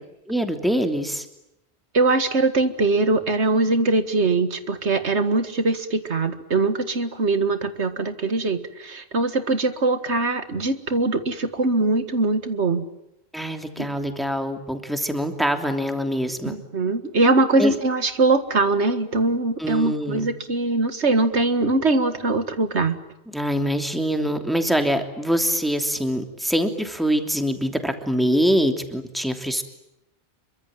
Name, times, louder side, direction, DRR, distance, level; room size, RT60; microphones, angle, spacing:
voice 1, 0.3-1.2 13.3-16.6 17.6-17.8 19.6-20.3 23.3-29.6, equal, ahead, 5 dB, 3.0 m, -24 dB
voice 2, 1.9-12.9 13.8-14.0 16.5-23.0, right 3 dB, 90° right, 9 dB, 2.1 m, -22 dB
27.0 x 24.0 x 9.0 m, 0.86 s
omnidirectional pair, 1.1 m